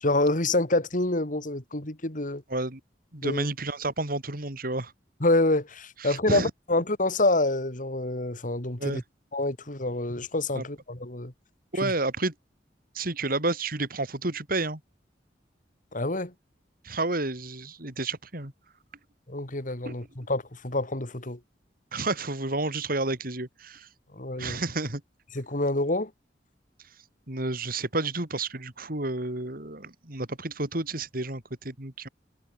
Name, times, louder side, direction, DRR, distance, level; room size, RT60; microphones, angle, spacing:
voice 1, 0.0-2.4 3.2-3.5 5.2-9.0 9.3-11.3 11.8-11.9 15.9-16.3 19.3-21.4 24.1-24.6 25.3-26.1, left 2 dB, 50° left, 3.1 m, -27 dB
voice 2, 2.5-2.8 3.1-4.9 6.0-6.5 8.8-9.0 10.5-10.6 11.7-12.3 12.9-14.8 16.8-18.5 19.9-20.0 21.9-23.9 24.4-25.0 27.3-32.1, right 2 dB, 55° right, 3.8 m, -30 dB
head